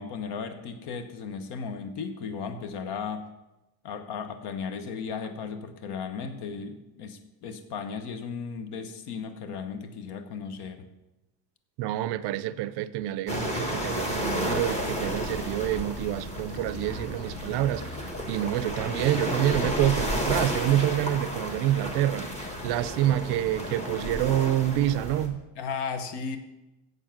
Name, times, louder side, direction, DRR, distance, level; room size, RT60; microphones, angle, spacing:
voice 1, 0.0-3.3 3.8-10.9 25.6-26.4, left 5 dB, 55° left, 1.1 m, -35 dB
voice 2, 11.8-18.0 18.3-22.3 22.6-25.4, right 13 dB, 60° right, 0.5 m, -27 dB
sound 1, 13.3-25.3, equal, 15° left, 1.1 m, -32 dB
8.1 x 7.2 x 5.8 m
cardioid pair, 165°, 47 cm